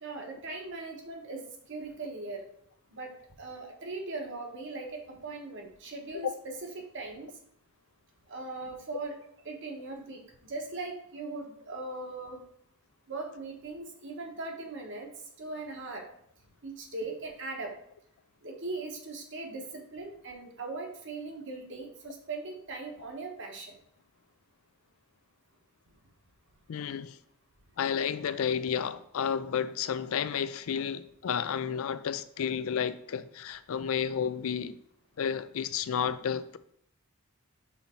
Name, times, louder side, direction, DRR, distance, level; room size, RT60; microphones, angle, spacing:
voice 1, 0.0-2.4 2.9-7.3 8.3-9.1 9.4-12.4 13.1-15.1 15.4-16.1 16.6-17.7 18.4-23.7, right 3 dB, 55° right, 2 dB, 1.2 m, -39 dB
voice 2, 26.7-27.2 27.8-34.8 35.2-36.6, left 7 dB, 65° left, 14 dB, 0.4 m, -31 dB
5.7 x 4.0 x 4.3 m, 0.71 s
head